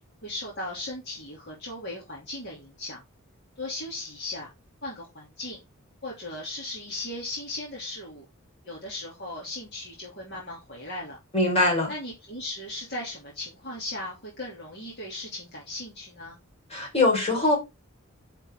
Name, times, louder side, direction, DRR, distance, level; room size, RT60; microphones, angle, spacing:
voice 1, 0.2-3.0 3.6-4.5 4.8-5.6 6.0-8.2 8.6-11.2 11.9-16.4, left 2 dB, 50° left, 2.7 m, -37 dB
voice 2, 11.3-11.9 16.7-17.5, left 2 dB, 30° left, 4.3 m, -22 dB
9.9 x 4.5 x 3.6 m
head